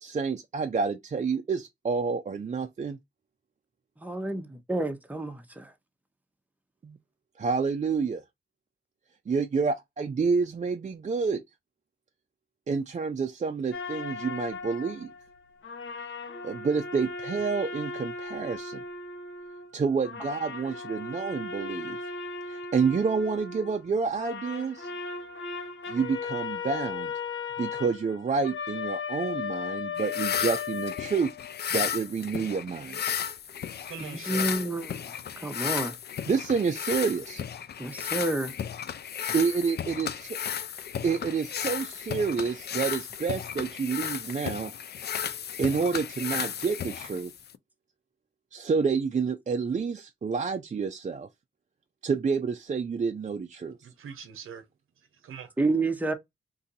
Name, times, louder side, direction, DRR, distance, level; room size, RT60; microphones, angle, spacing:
voice 1, 0.0-3.0 6.8-7.0 7.4-8.2 9.3-11.4 12.7-15.1 16.4-18.8 19.7-22.0 22.5-24.9 25.9-27.1 27.6-31.3 31.7-33.0 36.3-37.4 39.3-44.7 45.6-47.3 48.5-51.3 52.0-53.8, right 5 dB, 35° right, 0.4 m, -29 dB
voice 2, 4.0-5.7 34.0-35.1 35.4-35.9 37.8-38.5 55.6-56.1, right 2 dB, 5° right, 0.8 m, -29 dB
sound 1, 13.7-15.4 15.6-19.8 20.0-23.9 24.1-31.7, left 5 dB, 75° left, 0.9 m, -37 dB
sound 2, 30.0-47.6, left 8 dB, 55° left, 0.4 m, -34 dB
voice 3, 33.7-34.5 53.8-54.7 55.0-55.5, right 7 dB, 85° right, 0.7 m, -43 dB
2.7 x 2.5 x 4.0 m
cardioid pair, 50°, 21 cm